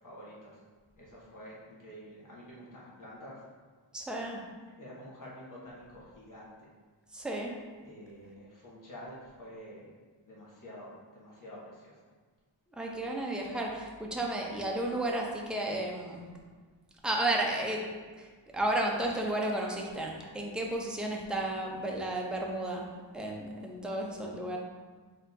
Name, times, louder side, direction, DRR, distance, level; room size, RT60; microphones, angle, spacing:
voice 1, 0.0-0.6 1.0-3.4 4.8-6.7 7.8-9.9 10.2-11.9, equal, 45° left, -7 dB, 1.4 m, -48 dB
voice 2, 3.9-4.4 7.1-7.6 12.7-16.3 17.0-17.8 18.2-18.3 18.5-22.9 23.1-24.6, right 1 dB, ahead, -1 dB, 0.5 m, -33 dB
4.2 x 2.7 x 4.0 m, 1.4 s
wide cardioid pair, 115°, 46 cm